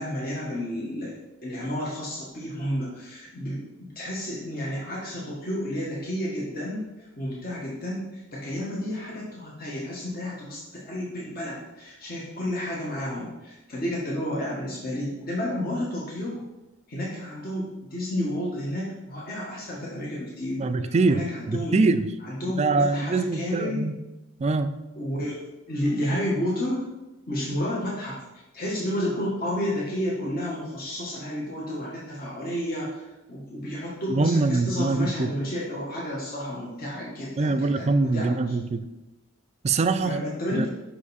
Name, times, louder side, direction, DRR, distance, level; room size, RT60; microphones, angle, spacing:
voice 1, 0.0-16.4 16.9-21.8 22.2-23.9 25.0-25.4 25.7-26.8 27.3-28.2 28.5-33.0 33.3-38.5 40.0-40.7, left 1 dB, 45° left, -5 dB, 1.3 m, -31 dB
voice 2, 20.6-22.1 22.6-24.0 24.4-24.7 34.1-35.3 37.4-38.8 39.6-40.2 40.6-40.7, right 3 dB, 30° right, 10 dB, 0.3 m, -23 dB
5.7 x 5.1 x 4.1 m, 1.0 s
head